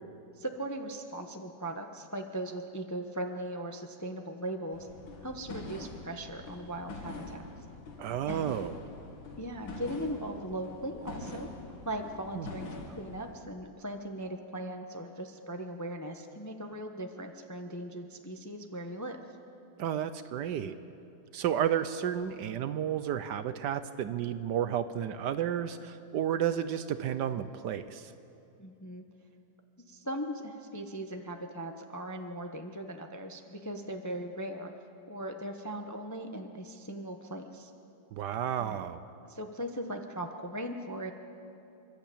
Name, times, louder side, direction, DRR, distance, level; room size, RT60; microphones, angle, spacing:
voice 1, 0.4-4.9 5.2-7.4 8.3-8.4 9.4-11.5 11.8-19.2 28.6-29.0 29.9-34.7 35.1-37.7 38.5-38.8 39.2-41.1, right 1 dB, 15° left, 4 dB, 0.6 m, -39 dB
sound 1, 4.7-13.3, left 2 dB, 80° left, 2.6 m, -44 dB
voice 2, 8.0-8.8 12.4-12.5 19.8-20.8 21.3-28.1 38.1-39.0, right 9 dB, 70° right, 12 dB, 1.2 m, -32 dB
28.0 x 12.0 x 8.5 m, 2.7 s
omnidirectional pair, 2.1 m